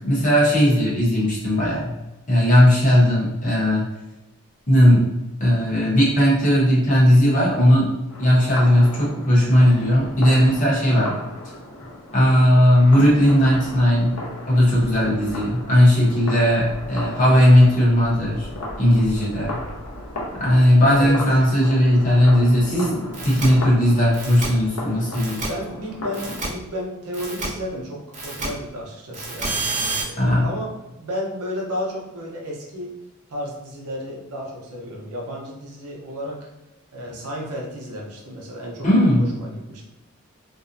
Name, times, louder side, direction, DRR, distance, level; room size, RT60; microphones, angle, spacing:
voice 1, 0.1-1.9 2.3-3.8 4.7-5.1 5.4-7.9 8.2-11.1 12.1-14.1 14.5-18.5 18.8-19.6 20.4-25.4 30.2-30.5 38.8-39.3, equal, 35° left, -6 dB, 0.8 m, -17 dB
sound 1, 8.1-26.5, left 1 dB, 75° left, 0.6 m, -36 dB
voice 2, 10.9-11.2 20.9-21.2 25.3-32.9 33.3-36.5 36.9-39.8, equal, 85° right, -2 dB, 0.7 m, -33 dB
sound 2, 23.1-23.5 24.1-24.5 25.1-25.5 26.1-26.5 27.1-27.5 28.1-28.5 29.1-30.0, right 3 dB, 30° right, 0.5 m, -28 dB
2.5 x 2.1 x 2.5 m, 1.0 s
head